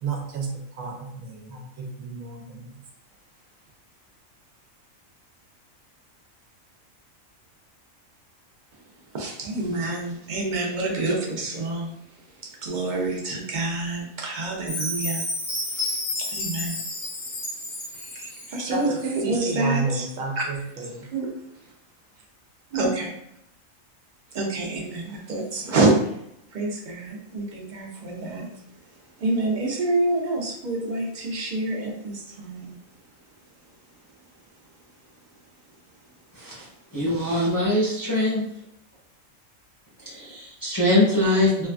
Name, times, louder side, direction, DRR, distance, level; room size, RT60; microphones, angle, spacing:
voice 1, 0.0-2.7 17.9-19.0 19.2-21.1, right 3 dB, 85° right, 1.1 m, -31 dB
voice 2, 9.1-15.2 15.6-20.1 21.0-21.3 21.6-21.7 22.7-23.1 24.3-26.2 26.5-32.8, right 2 dB, 50° right, 0.6 m, -28 dB
Chime, 14.7-18.7, left 2 dB, 85° left, 1.4 m, -31 dB
voice 3, 36.9-38.4 40.1-41.7, left 1 dB, 20° left, 0.6 m, -22 dB
3.1 x 2.4 x 2.3 m
omnidirectional pair, 1.4 m